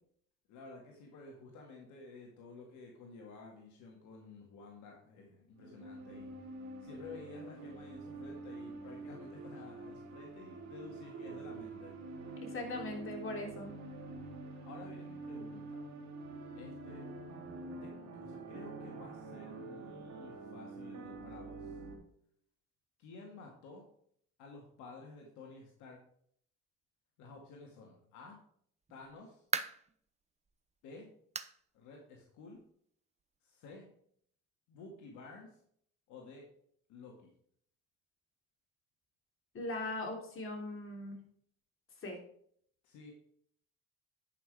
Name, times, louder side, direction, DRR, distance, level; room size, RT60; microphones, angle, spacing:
voice 1, 0.5-6.3 6.8-11.9 14.6-15.9 16.5-17.1 17.8-17.9 18.2-21.8 23.0-23.8 24.4-26.0 27.2-28.4 28.9-29.4 30.8-31.1 31.7-32.6 33.4-33.9 34.7-35.6 36.1-36.5 36.9-37.3 42.8-43.1, left 3 dB, 75° left, 0 dB, 2.0 m, -52 dB
sound 1, 5.6-22.0, right 3 dB, 65° right, 3.2 m, -46 dB
voice 2, 12.4-13.8 39.5-41.2 42.0-42.2, left 2 dB, 45° left, 1 dB, 3.2 m, -40 dB
sound 2, 28.9-30.0 30.5-30.6 31.3-31.6 31.9-32.0 32.5-32.6 33.7-33.8, right 5 dB, 20° right, 0.8 m, -38 dB
10.0 x 5.9 x 4.9 m, 0.64 s
supercardioid pair, 70°, 30 cm